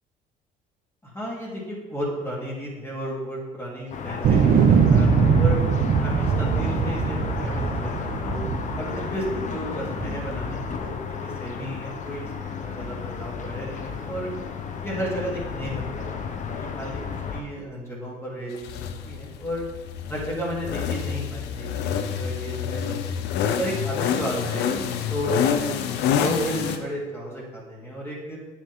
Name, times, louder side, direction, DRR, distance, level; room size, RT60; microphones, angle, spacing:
voice 1, 1.0-5.6 6.0-8.4 8.8-14.3 14.8-16.2 16.8-17.0 17.3-19.6 20.1-23.1 23.6-24.7 24.9-25.7 26.1-28.4, equal, 15° left, -5 dB, 3.3 m, -33 dB
sound 1, 3.9-17.4, left 6 dB, 45° left, 1.0 m, -33 dB
sound 2, 4.2-9.5 10.0-10.8, right 6 dB, 55° right, 0.9 m, -21 dB
sound 3, 18.6-26.8, left 8 dB, 85° left, 0.7 m, -27 dB
9.9 x 7.6 x 3.7 m, 1.2 s
cardioid pair, 110°, 17 cm